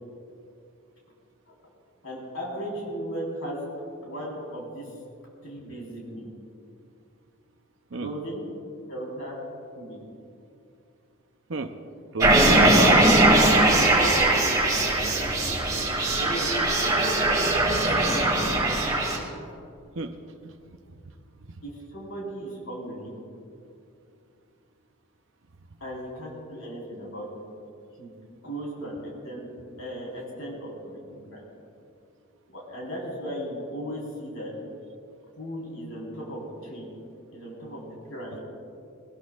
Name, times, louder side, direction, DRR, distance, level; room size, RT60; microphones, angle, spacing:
voice 1, 2.0-3.6 4.0-4.9 5.4-6.3 8.0-8.4 8.9-9.4 9.8-10.0 14.2-14.3 15.0-15.1 16.2-17.4 17.8-18.3 21.6-23.1 25.8-27.3 28.0-28.1 28.4-29.5 29.8-31.4 32.5-34.5 35.4-36.9 37.3-38.4, equal, 70° left, -4 dB, 4.3 m, -36 dB
voice 2, 12.1-12.9 19.9-20.5, right 3 dB, 65° right, 6 dB, 0.7 m, -32 dB
sound 1, 12.2-19.2, right 2 dB, 15° right, 2.4 m, -20 dB
20.5 x 20.0 x 2.5 m, 2.5 s
head